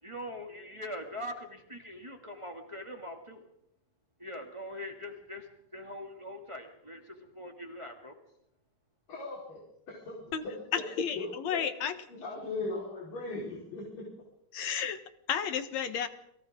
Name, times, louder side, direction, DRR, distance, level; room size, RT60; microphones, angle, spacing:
voice 1, 0.0-3.4 4.2-8.2, left 1 dB, 10° right, 2 dB, 2.1 m, -42 dB
voice 2, 9.1-10.9 11.2-11.6 12.1-14.1, left 3 dB, 80° left, -5 dB, 6.2 m, -39 dB
voice 3, 10.7-12.0 14.5-15.0 15.3-16.1, left 8 dB, 60° left, 9 dB, 2.4 m, -32 dB
29.5 x 23.0 x 3.8 m, 0.78 s
omnidirectional pair, 3.8 m